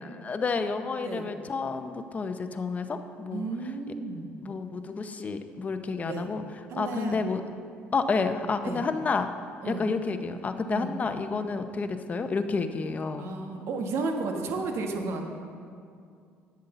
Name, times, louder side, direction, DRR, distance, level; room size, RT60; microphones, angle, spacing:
voice 1, 0.0-3.4 4.4-6.4 6.8-7.4 7.9-9.3 9.6-13.4, left 4 dB, 30° left, 8 dB, 0.7 m, -30 dB
voice 2, 3.3-4.3 6.1-6.3 6.7-7.2 8.6-8.8 9.6-9.9 10.7-10.9 13.2-15.3, right 3 dB, 65° right, 3 dB, 1.4 m, -33 dB
9.5 x 8.1 x 6.7 m, 2.3 s
cardioid pair, 100°, 5 cm